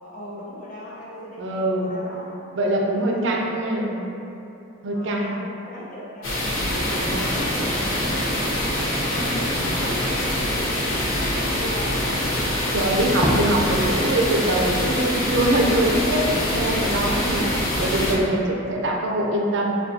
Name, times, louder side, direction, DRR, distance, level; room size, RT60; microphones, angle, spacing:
voice 1, 0.0-2.4 3.0-4.0 4.9-6.4 6.8-8.8 9.1-12.4 16.7-17.1, left 1 dB, 40° left, -6 dB, 0.7 m, -38 dB
voice 2, 1.4-1.9 2.6-4.0 4.8-5.4 7.0-7.4 12.7-17.5 17.8-19.7, right 1 dB, 60° right, 0 dB, 0.4 m, -23 dB
sound 1, 6.2-18.1, left 1 dB, 90° left, 0.8 m, -24 dB
Fireworks, 13.2-15.8 16.2-18.1, equal, 5° right, 0.5 m, -32 dB
6.6 x 2.2 x 2.6 m, 2.9 s
head